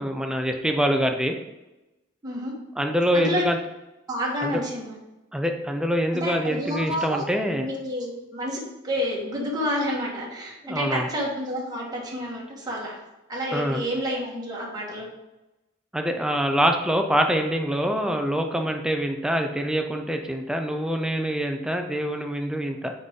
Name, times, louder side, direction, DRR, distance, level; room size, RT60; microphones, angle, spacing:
voice 1, 0.0-1.4 2.8-3.6 4.4-4.6 5.3-7.7 10.6-11.1 13.5-13.8 15.9-22.9, equal, 5° right, 4 dB, 0.5 m, -25 dB
voice 2, 2.2-2.5 3.1-3.4 4.1-5.0 6.2-7.2 7.6-12.9 13.3-15.1, equal, 20° right, -4 dB, 1.6 m, -29 dB
6.3 x 5.3 x 3.7 m, 0.98 s
head